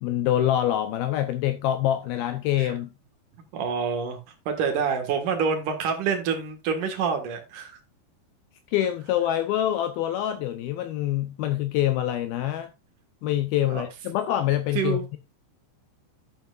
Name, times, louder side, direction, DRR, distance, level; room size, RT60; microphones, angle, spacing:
voice 1, 0.0-2.9 8.7-12.7 13.2-15.2, left 12 dB, 90° left, 2.1 m, -25 dB
voice 2, 3.5-4.2 4.5-7.8 13.7-13.8 14.8-15.1, right 6 dB, 55° right, 2.7 m, -27 dB
12.0 x 8.9 x 2.5 m
omnidirectional pair, 5.3 m